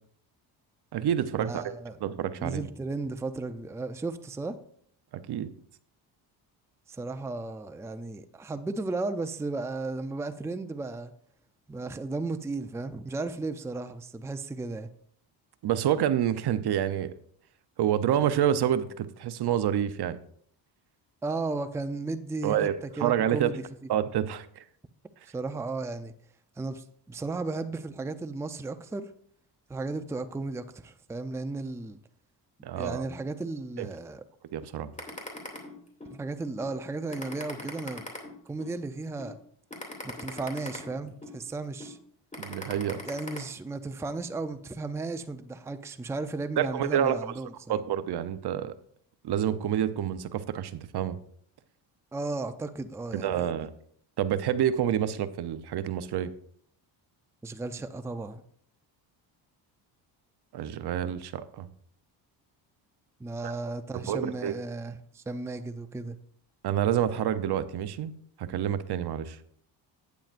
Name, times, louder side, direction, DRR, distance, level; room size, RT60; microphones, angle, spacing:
voice 1, 0.9-1.6 2.0-2.6 5.1-5.5 15.6-17.1 17.8-20.2 22.4-23.5 23.9-24.6 32.6-33.0 33.8-33.9 34.5-34.9 42.4-43.0 46.6-47.3 47.7-48.7 49.2-51.2 53.1-53.7 54.2-56.3 60.5-61.7 63.4-63.5 63.9-64.5 66.6-68.1 68.4-69.4, right 10 dB, 60° right, 0.8 m, -28 dB
voice 2, 1.5-2.0 2.4-4.6 6.9-11.1 11.7-14.9 21.2-22.7 23.0-23.6 25.2-26.1 26.6-29.1 29.7-32.0 32.7-34.2 36.1-38.1 38.5-39.4 40.0-42.0 43.0-47.8 52.1-53.5 57.4-58.4 63.2-66.2, right 3 dB, 5° right, 0.5 m, -35 dB
sound 1, 35.0-36.1 36.6-36.7 37.1-38.7 39.2-39.3 39.7-41.4 41.8-41.9 42.3-43.4, left 1 dB, 15° left, 2.6 m, -40 dB
11.5 x 9.3 x 2.6 m
cardioid pair, 90°, 45 cm